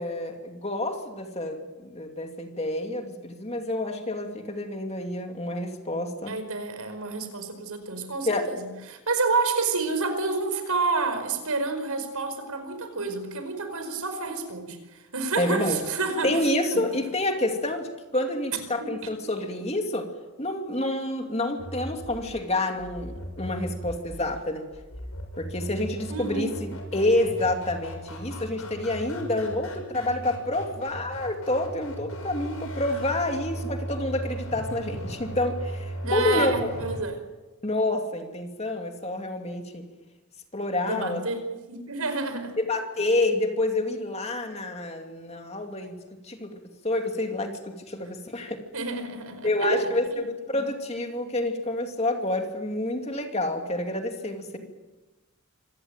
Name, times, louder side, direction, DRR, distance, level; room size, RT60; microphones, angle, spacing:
voice 1, 0.0-6.3 8.3-8.5 15.4-15.8 16.2-20.1 20.4-24.7 25.4-36.5 37.6-39.9 40.5-41.2 42.6-46.0 46.2-46.5 46.8-48.6 49.4-54.6, left 1 dB, 30° left, 4 dB, 2.7 m, -28 dB
voice 2, 6.3-16.4 16.7-16.8 18.8-18.9 26.1-26.5 36.0-37.2 40.8-41.4 41.7-42.6 48.7-49.8 50.1-50.2 54.5-54.6, right 3 dB, 80° right, 8 dB, 5.0 m, -29 dB
sound 1, 21.6-37.0, right 1 dB, 75° left, 6.6 m, -37 dB
26.0 x 18.5 x 9.1 m, 1.1 s
head